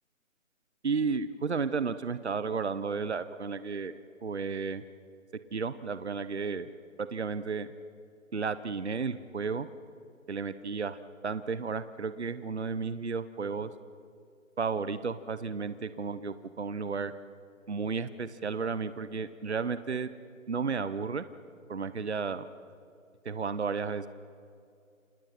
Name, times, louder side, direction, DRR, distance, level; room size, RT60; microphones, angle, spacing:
voice 1, 0.8-4.8 5.5-6.7 7.0-7.7 8.3-9.7 10.3-11.0 11.2-13.7 14.6-17.1 17.7-20.1 20.5-21.2 21.7-22.4 23.2-24.1, right 5 dB, 55° right, 13 dB, 1.0 m, -33 dB
28.5 x 27.5 x 5.9 m, 2.4 s
hypercardioid pair, 180°, 41 cm